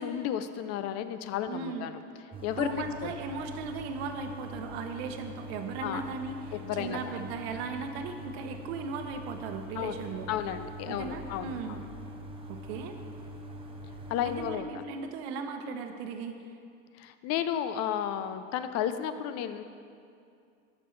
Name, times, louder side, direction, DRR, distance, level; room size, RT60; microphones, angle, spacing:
voice 1, 0.0-2.0 2.4-3.1 5.8-6.0 6.5-7.1 9.8-9.9 10.3-11.8 14.1-14.8 17.0-19.6, left 10 dB, 50° left, 11 dB, 0.5 m, -33 dB
voice 2, 1.5-1.9 2.6-10.3 10.9-11.8 12.5-13.0 14.2-16.4, right 5 dB, 75° right, 6 dB, 0.9 m, -37 dB
sound 1, 2.3-14.5, equal, 15° right, 0.7 m, -43 dB
12.5 x 6.1 x 3.2 m, 2.4 s
supercardioid pair, 115°, 32 cm